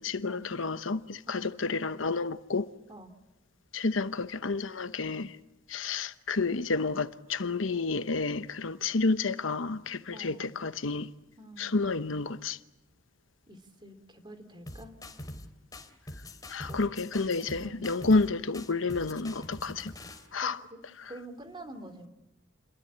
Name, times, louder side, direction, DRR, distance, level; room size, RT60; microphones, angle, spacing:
voice 1, 0.0-2.7 3.7-5.3 5.7-11.1 11.6-12.6 16.5-19.9 20.3-20.6, left 3 dB, 80° left, 1.0 m, -30 dB
voice 2, 10.1-10.6 11.4-11.8 13.5-14.9 16.6-16.8 17.6-17.9 20.4-20.8 21.1-22.1, right 1 dB, 25° right, 3.0 m, -47 dB
sound 1, 14.7-15.5 15.7-18.3 18.5-20.3, left 1 dB, 20° left, 3.0 m, -44 dB
29.5 x 23.0 x 8.7 m
head